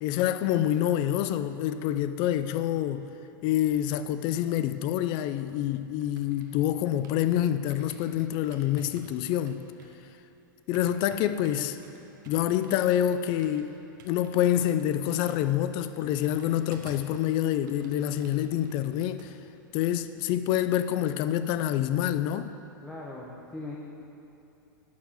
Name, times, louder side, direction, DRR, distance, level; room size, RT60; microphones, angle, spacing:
voice 1, 0.0-3.1 3.4-9.6 10.7-11.8 12.3-13.7 14.0-19.3 19.7-22.5, left 11 dB, 45° left, 12 dB, 0.5 m, -27 dB
sound 1, 5.0-7.3 7.7-17.2 17.5-19.3 19.6-19.8, right 4 dB, 65° right, 1.4 m, -53 dB
voice 2, 22.8-23.8, left 2 dB, 10° left, -4 dB, 1.1 m, -39 dB
11.5 x 4.6 x 7.5 m, 2.9 s
hypercardioid pair, 105°, 11 cm